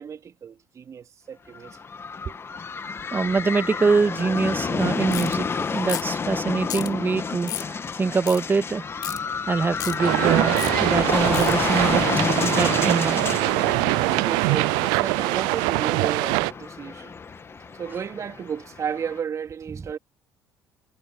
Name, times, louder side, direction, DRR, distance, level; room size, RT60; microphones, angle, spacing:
voice 1, 0.0-1.7 2.3-2.4 14.2-17.1 17.7-20.0, right 7 dB, 45° right, 3.6 m, -33 dB
sound 1, 1.5-19.2, left 5 dB, 35° left, 2.2 m, -30 dB
voice 2, 3.1-8.8 9.5-12.1 12.4-13.3 19.8-19.9, right 4 dB, 30° right, 1.9 m, -24 dB
sound 2, 5.1-5.4 5.9-6.2 6.7-6.9 7.5-7.7 8.3-8.4 9.0-9.2 9.8-10.0 10.6-10.7 11.3-11.5, left 13 dB, 65° left, 4.5 m, -32 dB
sound 3, 10.0-16.5, right 26 dB, 75° right, 0.6 m, -23 dB
hypercardioid pair, 60°, 7 cm